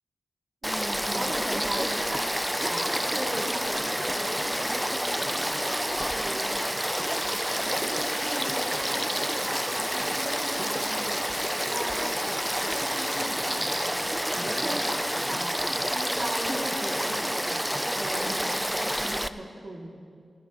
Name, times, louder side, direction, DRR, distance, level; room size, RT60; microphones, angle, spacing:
Frog / Stream, 0.6-19.3, equal, 5° right, 0.6 m, -29 dB
voice 1, 0.6-2.3 2.6-4.8 5.2-6.7 7.2-9.1 9.4-11.2 11.6-12.1 12.7-14.0 14.3-15.0 15.3-17.6 18.0-19.9, right 1 dB, 55° right, -2 dB, 2.7 m, -38 dB
28.0 x 14.0 x 3.1 m, 2.3 s
cardioid pair, 60°, 0 cm